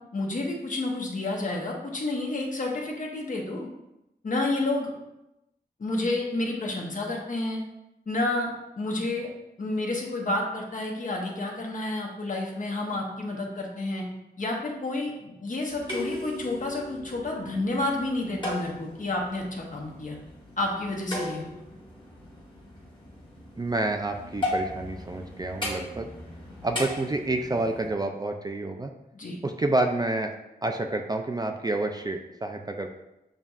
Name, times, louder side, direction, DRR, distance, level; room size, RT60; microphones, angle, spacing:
voice 1, 0.1-3.7 4.2-4.9 5.8-7.6 8.1-8.5 8.8-9.3 9.6-14.0 14.4-20.2 20.6-21.5 29.1-29.4, left 2 dB, 50° left, 0 dB, 0.9 m, -30 dB
sound 1, 15.7-27.9, left 1 dB, 30° left, 1.3 m, -37 dB
voice 2, 23.6-26.1 26.6-28.9 29.4-30.3 30.6-32.9, right 2 dB, 25° right, 4 dB, 0.3 m, -28 dB
7.2 x 2.7 x 2.3 m, 0.91 s
wide cardioid pair, 95°, 17 cm